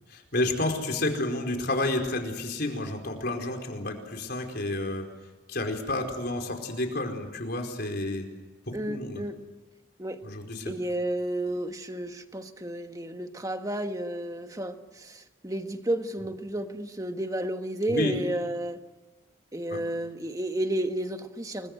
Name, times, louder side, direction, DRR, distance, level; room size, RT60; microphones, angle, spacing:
voice 1, 0.1-5.1 5.5-8.3 8.7-9.2 10.2-10.7 17.9-18.1 19.7-19.8, left 2 dB, 50° left, 3 dB, 4.7 m, -30 dB
voice 2, 8.7-9.3 10.0-10.2 10.6-18.8 19.5-21.7, right 1 dB, 15° right, 7 dB, 1.5 m, -32 dB
29.5 x 21.5 x 8.0 m, 1.1 s
head